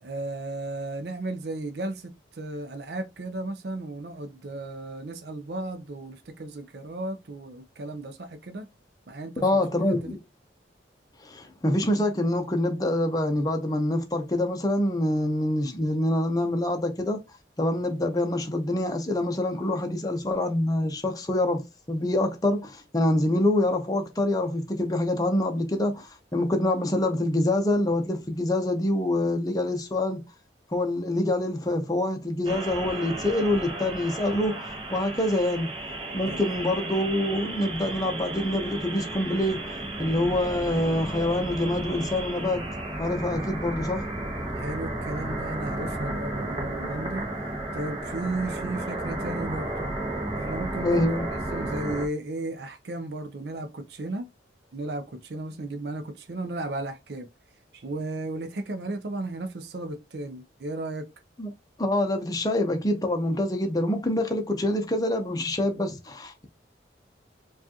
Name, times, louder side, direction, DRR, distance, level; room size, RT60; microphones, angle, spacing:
voice 1, 0.0-8.7 9.1-9.6 9.9-10.2 36.3-36.4 44.5-47.3 47.7-49.9 50.4-54.3 54.7-57.3 57.7-61.1, right 2 dB, 55° right, 0.5 m, -34 dB
voice 2, 9.4-10.2 11.2-17.2 17.6-30.2 30.7-35.7 36.1-42.7 43.0-44.1 50.8-51.2 61.4-61.5 61.8-66.4, left 1 dB, 20° left, 0.6 m, -26 dB
sound 1, 32.4-52.1, right 1 dB, 25° right, 0.8 m, -33 dB
4.8 x 2.4 x 2.8 m
head